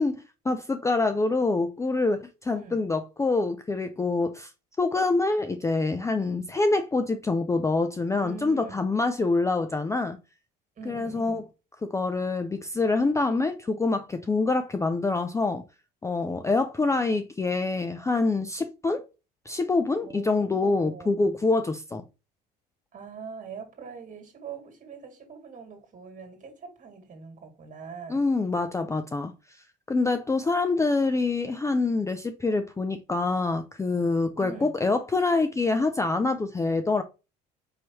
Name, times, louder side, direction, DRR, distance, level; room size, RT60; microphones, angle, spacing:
voice 1, 0.0-4.5 4.8-10.2 10.9-11.4 11.8-15.6 16.0-19.0 19.5-22.0 28.1-29.3 29.9-37.0, left 3 dB, 15° left, 0.4 m, -26 dB
voice 2, 2.4-2.8 8.2-8.8 10.8-11.4 16.3-16.6 16.9-17.0 20.0-21.4 22.9-28.2 34.4-34.7, right 5 dB, 40° right, 1.9 m, -43 dB
4.7 x 3.0 x 2.8 m
hypercardioid pair, 70°, 20 cm